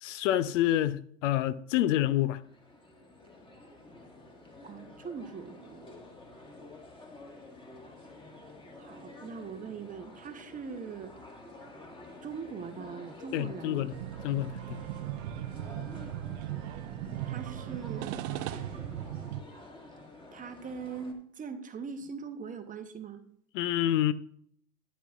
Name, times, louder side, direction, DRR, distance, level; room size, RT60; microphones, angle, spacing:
voice 1, 0.0-2.4 13.3-13.9 14.2-14.8 23.5-24.1, left 13 dB, 60° left, 0.6 m, -28 dB
sound 1, 2.3-21.1, left 2 dB, 10° left, 1.6 m, -50 dB
voice 2, 4.6-5.9 8.8-11.1 12.2-13.9 17.2-18.2 20.3-23.2, right 6 dB, 20° right, 0.8 m, -41 dB
sound 2, 13.9-19.4, right 13 dB, 50° right, 0.8 m, -37 dB
12.5 x 9.3 x 2.4 m
hypercardioid pair, 110°, 43 cm